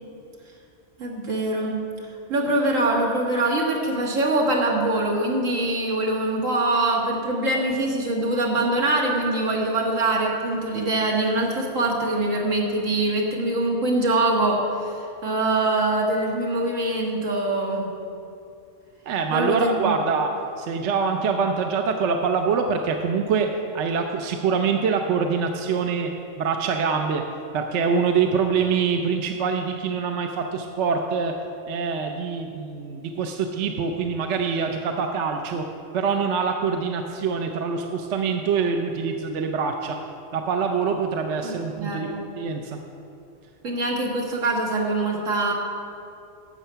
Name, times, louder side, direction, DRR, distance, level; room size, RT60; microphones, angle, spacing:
voice 1, 1.0-1.8 2.3-17.9 19.3-20.0 41.4-42.2 43.6-45.5, right 2 dB, 85° right, -1 dB, 2.1 m, -23 dB
voice 2, 19.1-20.3 20.6-26.1 26.4-27.2 27.5-31.4 31.7-35.7 35.9-40.0 40.3-42.1 42.4-42.8, right 5 dB, 70° right, 4 dB, 1.0 m, -24 dB
12.5 x 7.8 x 5.6 m, 2.6 s
omnidirectional pair, 1.3 m